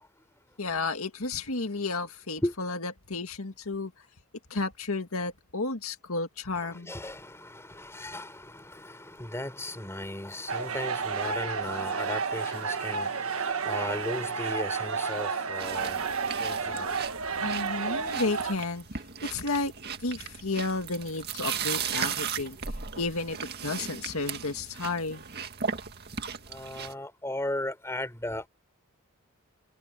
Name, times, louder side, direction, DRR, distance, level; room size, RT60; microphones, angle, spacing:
voice 1, 0.6-3.9 4.5-6.9 17.4-18.8 19.2-19.7 20.0-22.6 23.0-23.4 23.6-25.2, left 3 dB, 80° left, 2.0 m, -32 dB
voice 2, 6.6-16.1 16.4-17.0 26.5-28.5, left 1 dB, 15° left, 4.2 m, -36 dB
sound 1, 10.5-18.5, right 5 dB, 75° right, 1.4 m, -31 dB
sound 2, 15.6-26.9, right 7 dB, 50° right, 2.0 m, -36 dB
head